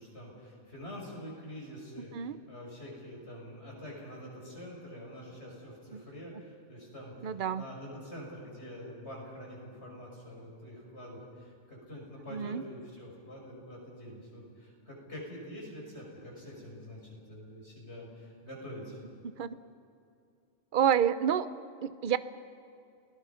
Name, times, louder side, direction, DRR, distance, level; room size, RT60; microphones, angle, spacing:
voice 1, 0.0-19.0, equal, 55° left, -2 dB, 6.1 m, -46 dB
voice 2, 2.0-2.4 5.9-6.0 7.2-7.7 12.3-12.6 19.4-19.6 20.7-21.5 21.8-22.2, right 9 dB, 50° right, 14 dB, 0.8 m, -29 dB
29.0 x 18.0 x 5.8 m, 2.6 s
omnidirectional pair, 1.3 m